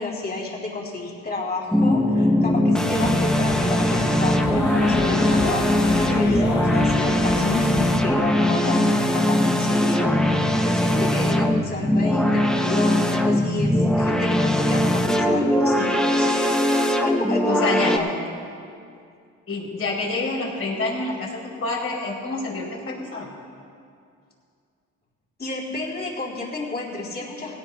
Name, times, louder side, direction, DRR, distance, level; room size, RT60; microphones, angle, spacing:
voice 1, 0.0-7.7 8.0-16.6 17.0-18.1 25.4-27.5, left 3 dB, 35° left, -4 dB, 3.8 m, -31 dB
sound 1, 1.7-18.0, left 1 dB, ahead, 0.9 m, -20 dB
sound 2, 2.9-7.9, left 3 dB, 85° left, 1.6 m, -29 dB
voice 2, 17.5-17.9 19.5-23.3, left 3 dB, 50° left, -3 dB, 3.7 m, -28 dB
19.0 x 17.5 x 2.4 m, 2.4 s
cardioid pair, 90°, 30 cm